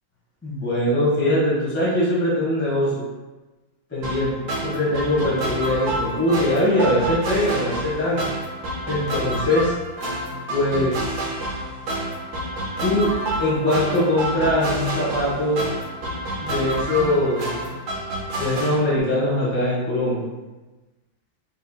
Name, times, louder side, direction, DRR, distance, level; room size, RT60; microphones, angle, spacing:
voice 1, 0.4-3.0 3.9-4.3 4.6-8.2 8.9-9.7 10.5-10.9 12.8-13.1 13.4-15.6 16.4-17.5 18.4-20.2, left 1 dB, 10° left, -7 dB, 0.7 m, -22 dB
sound 1, 4.0-18.8, right 1 dB, 65° right, 1.1 m, -29 dB
4.1 x 3.8 x 2.3 m, 1.2 s
omnidirectional pair, 2.1 m